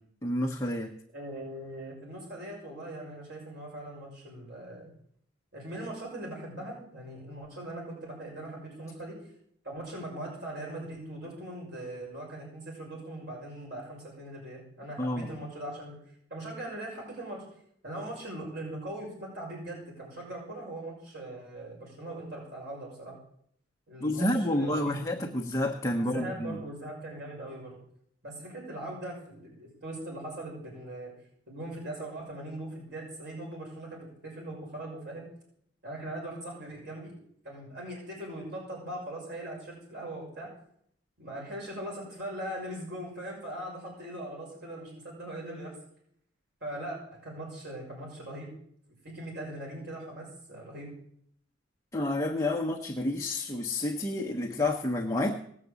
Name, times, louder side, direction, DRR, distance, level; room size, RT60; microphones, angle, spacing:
voice 1, 0.2-0.9 15.0-15.3 24.0-26.6 51.9-55.4, left 1 dB, 15° left, 0 dB, 1.1 m, -29 dB
voice 2, 1.1-4.9 5.5-9.1 9.6-16.0 16.3-17.4 17.8-23.1 23.9-25.0 26.0-27.7 28.2-31.1 31.5-35.3 35.8-37.1 37.4-40.5 41.2-45.7 46.6-48.5 49.0-50.9, right 1 dB, 60° right, -2 dB, 6.4 m, -40 dB
19.0 x 7.5 x 8.3 m, 0.67 s
head